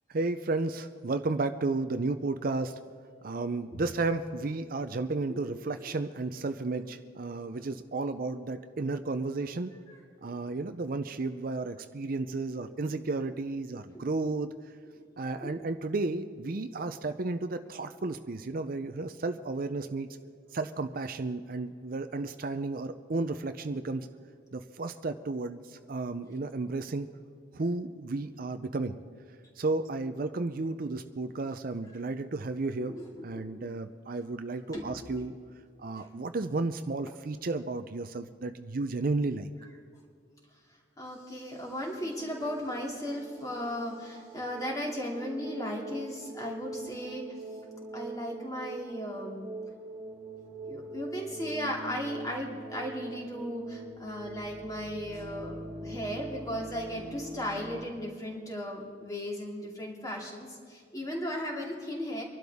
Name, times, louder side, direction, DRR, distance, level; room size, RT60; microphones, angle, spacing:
voice 1, 0.1-2.8 3.2-9.7 10.2-14.6 15.2-20.1 20.5-24.1 24.5-27.1 27.5-29.0 29.6-33.0 33.2-35.4 35.8-39.5, right 3 dB, 50° right, 9 dB, 0.5 m, -33 dB
voice 2, 32.8-33.7 34.7-34.9 36.0-36.1 41.0-47.3 47.9-49.5 50.6-55.5 55.8-62.2, equal, 20° left, -2 dB, 2.7 m, -36 dB
sound 1, 42.0-57.9, right 2 dB, 25° right, 2.3 m, -43 dB
25.0 x 12.0 x 3.6 m, 2.1 s
head